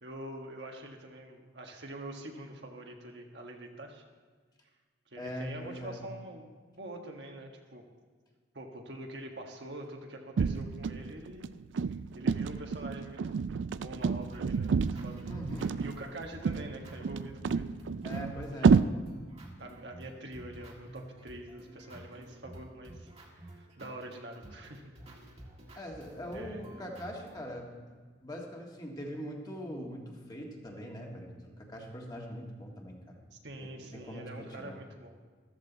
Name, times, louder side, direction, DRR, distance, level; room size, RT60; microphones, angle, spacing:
voice 1, 0.0-4.0 5.1-6.5 6.7-7.8 8.5-11.6 11.9-13.4 13.8-15.2 15.5-17.7 18.6-18.9 19.6-23.1 23.4-24.9 25.7-25.8 26.3-26.9 33.3-35.1, right 1 dB, 65° right, 2 dB, 1.5 m, -45 dB
voice 2, 5.2-6.0 15.3-15.7 18.0-18.8 25.8-27.8 28.2-33.2 33.6-34.8, equal, 20° left, 0 dB, 1.8 m, -42 dB
sound 1, 10.4-18.8, right 5 dB, 85° right, 0.4 m, -30 dB
sound 2, 14.0-27.5, right 1 dB, 35° right, 1.8 m, -51 dB
14.0 x 13.5 x 4.0 m, 1.5 s
head